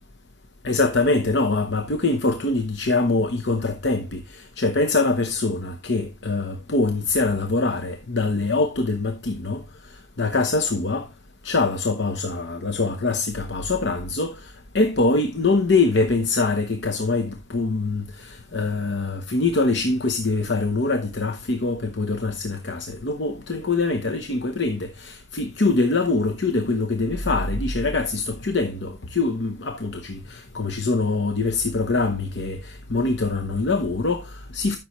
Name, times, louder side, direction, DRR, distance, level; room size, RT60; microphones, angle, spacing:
voice 1, 0.6-9.7 10.2-11.1 11.4-34.8, left 3 dB, 70° left, 0.9 m, -24 dB
12.5 x 6.2 x 3.1 m
head